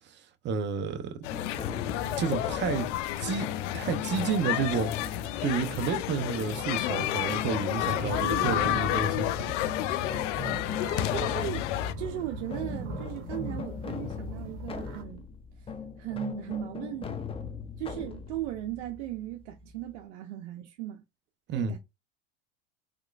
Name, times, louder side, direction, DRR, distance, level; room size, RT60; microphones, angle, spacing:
voice 1, 0.4-1.3 2.1-2.9 3.2-3.5 3.7-4.9 5.4-9.6 21.5-21.8, right 6 dB, 30° right, 0.7 m, -30 dB
sound 1, 1.2-11.9, left 14 dB, 85° left, 0.5 m, -31 dB
sound 2, 1.3-20.0, left 6 dB, 15° left, 0.5 m, -40 dB
sound 3, 7.9-15.0, right 1 dB, 50° right, 1.5 m, -39 dB
voice 2, 11.1-11.7 12.0-15.3 15.6-17.2 17.8-21.0 21.5-21.8, right 12 dB, 80° right, 0.7 m, -37 dB
3.7 x 3.0 x 2.3 m
supercardioid pair, 110°, 36 cm